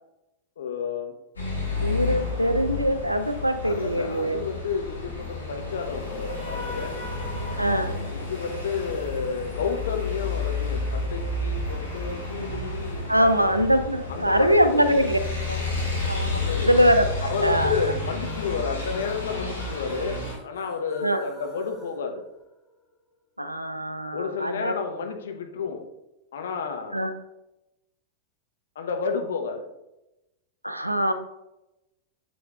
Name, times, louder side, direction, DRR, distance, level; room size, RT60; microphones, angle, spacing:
voice 1, 0.6-1.1 3.6-7.0 8.1-13.4 14.1-15.1 16.3-16.7 17.3-22.3 24.1-25.9 26.3-27.1 28.7-29.7, left 5 dB, 65° left, 4 dB, 0.9 m, -31 dB
sound 1, 1.4-20.4, left 2 dB, 80° left, 2.4 m, -31 dB
voice 2, 1.8-4.4 7.6-8.0 13.1-15.2 15.5-15.6 16.1-17.9 21.0-21.2 23.4-24.7 26.9-27.1 30.6-31.1, equal, 85° right, 9 dB, 0.5 m, -23 dB
sound 2, 18.2-22.9, left 3 dB, 15° left, 1.4 m, -48 dB
7.7 x 7.0 x 2.4 m, 0.92 s
figure-of-eight pair, 90°, 0 cm